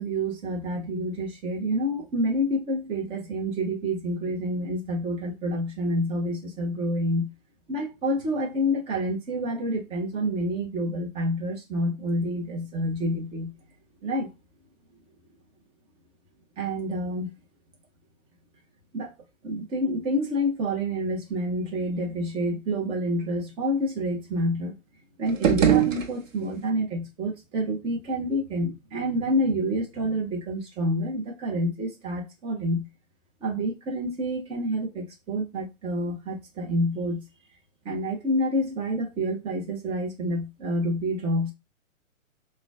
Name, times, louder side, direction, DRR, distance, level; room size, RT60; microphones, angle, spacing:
voice 1, 0.0-7.3 7.7-13.5 14.0-14.3 16.6-17.3 18.9-19.1 19.4-24.7 25.2-32.8 33.4-37.2 37.8-41.5, equal, 15° right, 0.7 m, -28 dB
sound 1, 25.3-26.7, right 9 dB, 70° right, 0.8 m, -23 dB
3.7 x 2.3 x 3.4 m
hypercardioid pair, 125°, 40 cm